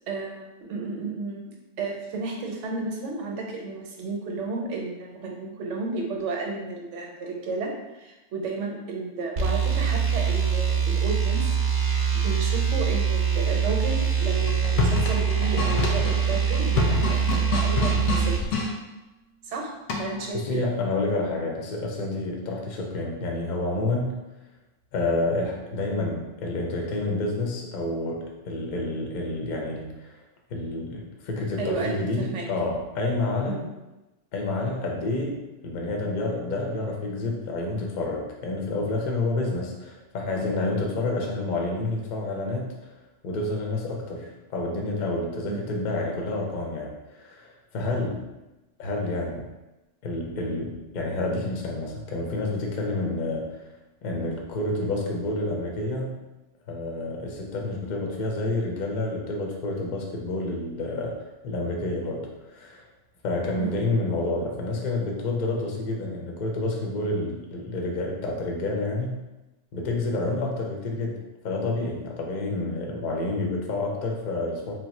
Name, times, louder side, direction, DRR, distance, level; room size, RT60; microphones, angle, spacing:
voice 1, 0.1-11.4 12.1-18.4 19.4-19.7 20.0-20.6 31.6-32.4 33.5-33.7 45.5-45.7 63.6-63.7, right 3 dB, 80° right, 0 dB, 0.9 m, -32 dB
sound 1, 9.4-18.4, right 7 dB, 55° right, 0.6 m, -24 dB
sound 2, 14.4-18.7 19.9-20.3, left 4 dB, 85° left, 0.9 m, -27 dB
voice 2, 20.3-24.2 24.9-30.2 30.5-33.6 34.3-43.0 43.2-48.3 48.8-49.5 50.0-53.7 54.0-56.2 56.7-61.2 61.4-62.9 63.2-69.2 69.7-74.7, left 2 dB, 50° left, 0 dB, 0.6 m, -29 dB
2.9 x 2.0 x 4.0 m, 1.1 s
omnidirectional pair, 1.2 m